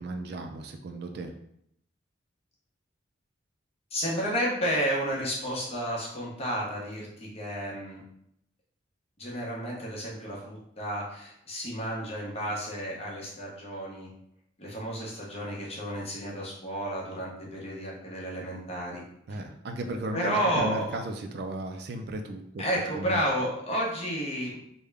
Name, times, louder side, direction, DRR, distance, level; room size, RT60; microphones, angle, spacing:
voice 1, 0.0-1.3 19.3-23.2, right 1 dB, 55° right, 5 dB, 0.3 m, -35 dB
voice 2, 3.9-8.0 9.2-14.1 14.6-19.0 19.3-19.4 20.1-21.0 22.6-24.6, equal, 30° left, -3 dB, 0.9 m, -31 dB
3.5 x 2.2 x 3.3 m, 0.74 s
head